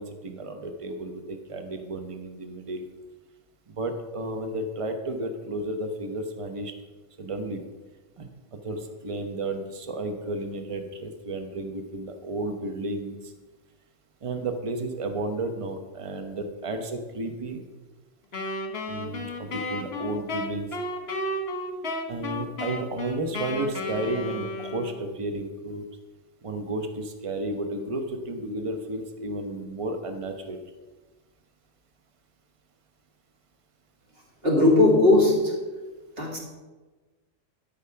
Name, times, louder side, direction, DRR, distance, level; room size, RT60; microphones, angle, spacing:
voice 1, 0.0-2.9 3.7-6.7 7.2-7.6 8.2-8.3 8.6-13.2 14.2-17.6 18.9-20.7 22.1-25.8 26.4-30.6, right 2 dB, 30° right, 6 dB, 0.9 m, -32 dB
Wind instrument woodwind instrument, 18.3-25.2, left 1 dB, 50° left, 1.3 m, -33 dB
voice 2, 34.4-35.5 36.2-36.4, left 2 dB, 45° right, -2 dB, 2.6 m, -18 dB
12.0 x 5.8 x 5.7 m, 1.3 s
omnidirectional pair, 1.4 m